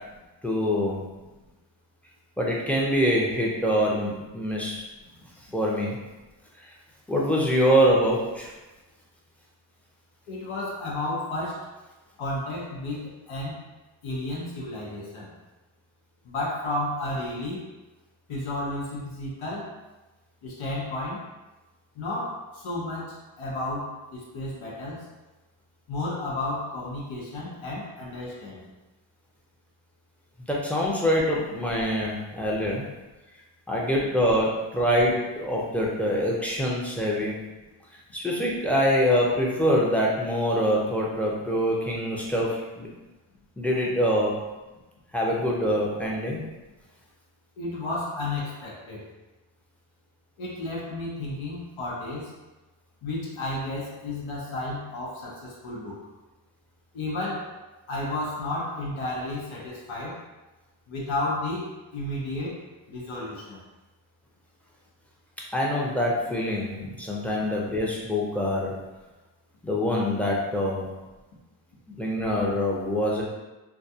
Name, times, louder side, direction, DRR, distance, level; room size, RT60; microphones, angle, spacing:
voice 1, 0.4-1.0 2.4-4.8 5.5-6.0 7.1-8.5 30.5-32.9 33.7-37.4 38.1-42.9 43.6-44.3 45.1-46.4 65.5-68.7 69.6-70.8 71.9-73.2, equal, 5° left, -4 dB, 0.5 m, -24 dB
voice 2, 10.3-11.6 12.2-13.6 14.0-15.3 16.3-17.6 18.3-19.7 20.4-21.2 22.0-22.4 22.6-25.0 25.9-28.6 47.6-49.0 50.4-52.3 53.0-56.0 56.9-57.5 57.9-60.2 60.9-61.7 61.9-62.6 62.9-63.6, left 2 dB, 80° left, -4 dB, 0.8 m, -32 dB
2.3 x 2.3 x 2.7 m, 1.1 s
cardioid pair, 80°, 47 cm